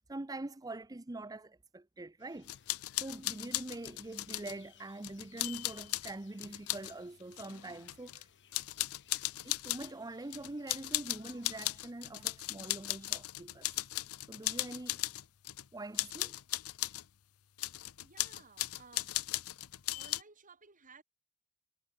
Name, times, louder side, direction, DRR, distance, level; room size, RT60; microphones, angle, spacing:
voice 1, 0.1-2.5 3.0-8.3 9.4-13.7 14.3-15.0 15.7-16.3, right 2 dB, 15° right, 0.7 m, -44 dB
sound 1, 2.2-11.7, left 8 dB, 60° left, 6.8 m, -65 dB
sound 2, 2.5-4.6 5.0-6.9 7.3-8.2 8.5-9.9 10.3-15.7 15.9-17.0 17.6-20.2, left 17 dB, 85° left, 0.6 m, -37 dB
voice 2, 18.0-19.1 20.0-21.0, right 4 dB, 40° right, 7.3 m, -57 dB
head